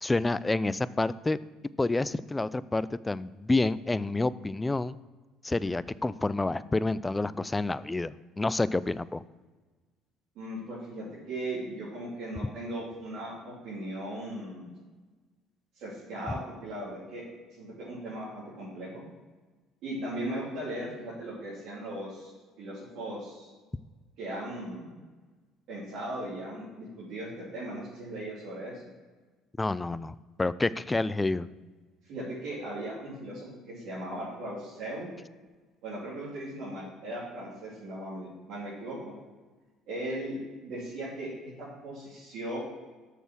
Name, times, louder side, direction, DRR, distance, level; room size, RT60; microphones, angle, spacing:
voice 1, 0.0-1.4 1.8-4.9 5.4-9.2 29.6-31.5, left 2 dB, 15° left, 17 dB, 0.3 m, -28 dB
voice 2, 10.3-14.7 15.7-17.2 17.6-19.0 19.8-22.3 22.6-23.5 24.2-25.0 25.7-28.7 32.0-35.1 35.8-39.1 39.9-42.6, right 1 dB, 70° right, -9 dB, 3.0 m, -38 dB
6.7 x 6.5 x 6.1 m, 1.3 s
supercardioid pair, 80°, 0 cm